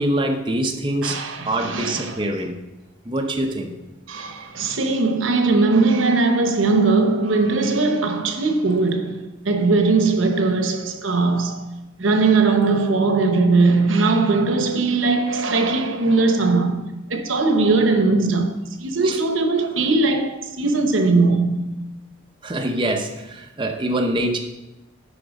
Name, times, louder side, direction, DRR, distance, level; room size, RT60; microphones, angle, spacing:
voice 1, 0.0-1.2 1.5-2.5 3.1-3.7 19.0-19.2 22.4-24.4, right 1 dB, 25° right, 0.8 m, -24 dB
voice 2, 1.0-2.3 4.1-11.7 12.0-21.8, right 3 dB, 85° right, 0.9 m, -20 dB
8.4 x 5.2 x 5.2 m
head